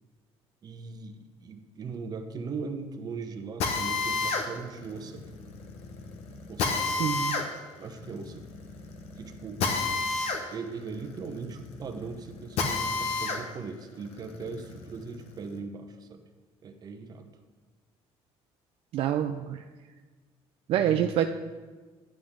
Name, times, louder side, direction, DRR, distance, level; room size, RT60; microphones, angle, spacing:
voice 1, 0.6-5.2 6.5-7.1 7.8-8.5 9.2-9.6 10.5-16.2 16.6-17.3 20.7-21.1, right 4 dB, 35° right, 6 dB, 0.9 m, -39 dB
Drill, 3.6-13.4 13.9-15.5, left 4 dB, 75° left, 1.1 m, -31 dB
voice 2, 7.0-7.4 18.9-19.6 20.7-21.3, right 10 dB, 60° right, 6 dB, 0.4 m, -26 dB
10.0 x 7.8 x 3.7 m, 1.4 s
cardioid pair, 130°, 11 cm